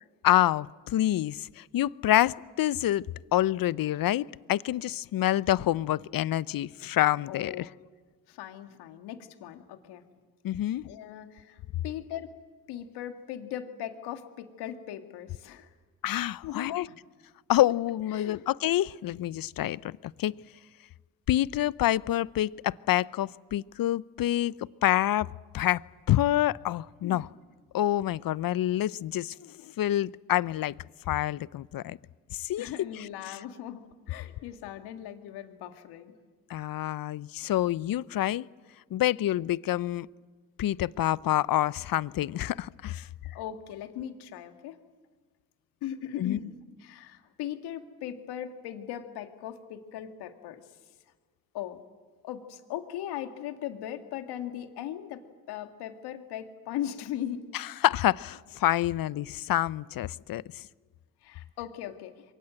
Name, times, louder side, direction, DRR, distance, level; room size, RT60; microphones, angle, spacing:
voice 1, 0.2-3.0 3.3-7.7 10.4-10.8 16.0-16.9 17.5-20.3 21.3-24.5 24.8-25.3 25.5-25.8 26.1-27.3 27.7-30.7 31.1-32.0 32.3-32.7 33.0-33.4 36.5-38.5 38.9-40.1 40.6-43.0 46.2-46.4 57.5-60.6, left 13 dB, 60° left, 20 dB, 0.7 m, -27 dB
voice 2, 7.3-7.7 8.3-10.0 10.8-11.6 11.8-12.3 12.7-15.7 16.4-17.0 18.1-18.5 27.0-27.2 32.6-36.1 43.0-44.8 45.8-46.5 46.8-50.6 51.5-51.8 52.2-55.2 55.5-57.4 61.2-62.1, left 11 dB, 85° left, 7 dB, 2.1 m, -39 dB
28.5 x 23.5 x 7.8 m, 1.5 s
supercardioid pair, 50°, 38 cm